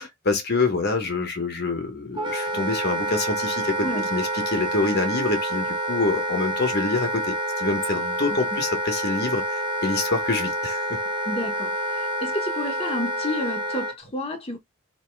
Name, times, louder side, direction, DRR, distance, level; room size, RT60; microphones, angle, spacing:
voice 1, 0.0-11.0, left 3 dB, 55° left, 1.2 m, -26 dB
Wind instrument woodwind instrument, 2.1-14.0, right 1 dB, 25° right, 0.8 m, -28 dB
voice 2, 8.3-8.6 11.3-14.6, left 1 dB, 30° left, 1.0 m, -31 dB
3.0 x 2.9 x 4.5 m
head